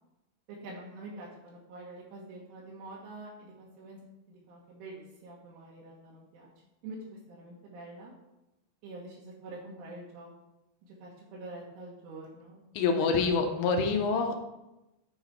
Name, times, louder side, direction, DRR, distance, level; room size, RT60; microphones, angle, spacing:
voice 1, 0.6-4.0 4.3-6.5 6.8-8.1 8.8-10.3 10.8-12.6 13.0-13.2, right 2 dB, 75° right, -5 dB, 3.8 m, -46 dB
voice 2, 12.7-14.4, left 4 dB, 85° left, 4 dB, 3.3 m, -26 dB
9.6 x 4.1 x 4.5 m, 0.95 s
omnidirectional pair, 5.8 m